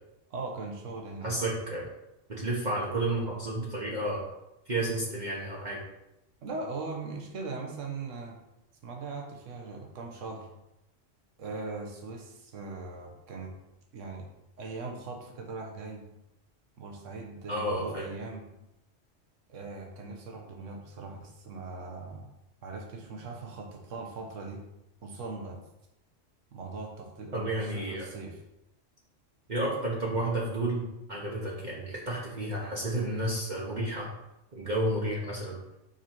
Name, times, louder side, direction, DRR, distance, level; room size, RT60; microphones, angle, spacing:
voice 1, 0.3-1.4 6.4-8.4 8.8-10.5 11.4-13.5 13.9-14.3 14.6-16.0 16.8-18.5 19.5-22.3 22.6-24.6 25.0-25.6 26.5-28.4, right 3 dB, 80° right, 2 dB, 1.4 m, -40 dB
voice 2, 1.2-1.9 2.3-4.3 4.7-5.9 17.5-18.1 27.3-28.1 29.5-34.1 34.5-35.6, right 1 dB, 40° right, -5 dB, 1.1 m, -31 dB
5.7 x 4.2 x 4.5 m, 0.91 s
omnidirectional pair, 1.3 m